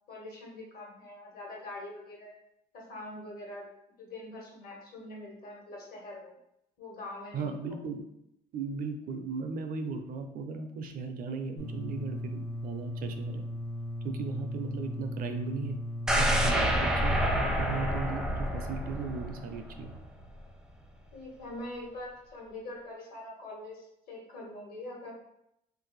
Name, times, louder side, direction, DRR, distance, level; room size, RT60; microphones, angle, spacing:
voice 1, 0.0-2.3 2.7-3.7 4.0-6.3 6.8-7.5 21.1-25.1, left 1 dB, 60° left, -2 dB, 1.3 m, -43 dB
voice 2, 7.3-8.0 8.5-13.4 14.0-15.8 16.1-17.2 17.6-19.9, right 4 dB, 55° right, 6 dB, 0.5 m, -36 dB
sound 1, 11.6-16.6, equal, 85° left, 0.9 m, -37 dB
sound 2, 16.1-20.1 20.4-20.5, equal, 5° right, 0.4 m, -28 dB
2.6 x 2.5 x 3.9 m, 0.79 s
cardioid pair, 110°, 17 cm